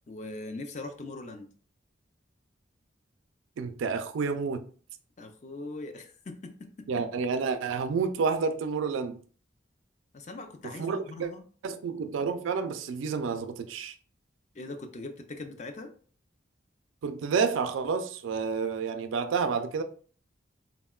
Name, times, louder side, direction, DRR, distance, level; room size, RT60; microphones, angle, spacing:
voice 1, 0.1-1.5 5.2-6.9 10.1-11.4 14.5-15.9, left 2 dB, 35° left, 0.3 m, -41 dB
voice 2, 3.6-4.6 6.9-9.2 10.6-11.3 11.6-14.0 17.0-19.8, right 5 dB, 85° right, 0.3 m, -29 dB
3.5 x 2.1 x 2.3 m
head